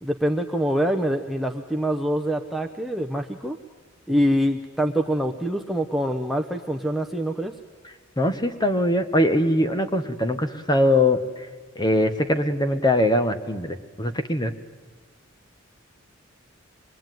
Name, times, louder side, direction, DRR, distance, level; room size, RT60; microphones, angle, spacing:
voice 1, 0.0-3.6 4.1-7.5, equal, ahead, 2 dB, 0.9 m, -25 dB
voice 2, 8.2-11.5 11.7-14.5, left 1 dB, 20° left, 9 dB, 1.3 m, -22 dB
25.5 x 21.5 x 9.3 m, 1.5 s
head